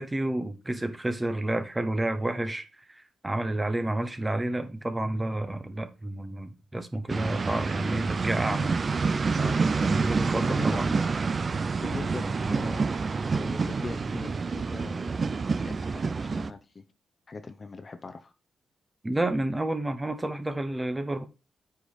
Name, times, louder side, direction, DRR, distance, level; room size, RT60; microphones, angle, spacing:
voice 1, 0.0-8.7 9.9-11.0 19.0-21.2, right 1 dB, 15° right, 1.0 m, -30 dB
sound 1, 7.1-16.5, right 4 dB, 35° right, 0.5 m, -28 dB
voice 2, 10.5-10.8 11.8-12.9 13.3-15.1 15.6-16.8 17.3-18.3, left 4 dB, 30° left, 0.8 m, -40 dB
8.1 x 5.2 x 4.1 m
cardioid pair, 115°, 0 cm